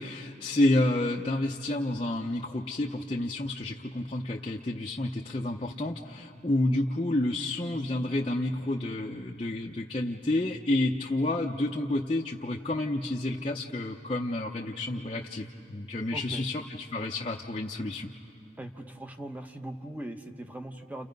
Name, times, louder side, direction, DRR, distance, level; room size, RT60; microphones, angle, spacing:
voice 1, 0.0-18.1, left 1 dB, 30° left, -2 dB, 0.7 m, -30 dB
voice 2, 16.1-16.4 18.6-21.1, right 1 dB, 10° right, 6 dB, 0.9 m, -40 dB
30.0 x 29.0 x 5.3 m, 2.7 s
head